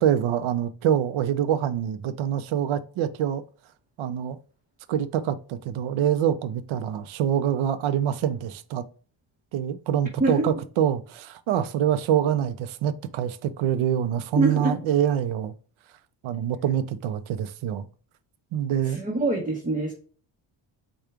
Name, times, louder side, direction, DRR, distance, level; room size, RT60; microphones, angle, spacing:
voice 1, 0.0-3.4 4.0-4.4 4.9-8.9 9.5-15.5 16.2-17.9 18.5-19.0, right 10 dB, 70° right, 0.6 m, -25 dB
voice 2, 14.3-14.8 18.9-19.9, right 2 dB, 15° right, 0.9 m, -24 dB
5.0 x 2.3 x 4.4 m
cardioid pair, 130°, 49 cm